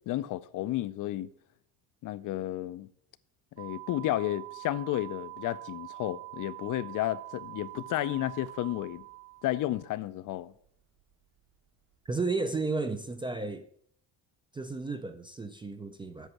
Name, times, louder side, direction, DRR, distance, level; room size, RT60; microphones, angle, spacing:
voice 1, 0.1-1.3 2.0-2.9 3.6-9.0 9.4-10.5, left 14 dB, 50° left, 0.5 m, -32 dB
sound 1, 3.6-9.9, right 24 dB, 75° right, 2.1 m, -45 dB
voice 2, 12.1-13.7 14.5-16.3, right 3 dB, 15° right, 0.3 m, -33 dB
8.0 x 7.3 x 6.0 m
cardioid pair, 155°, 41 cm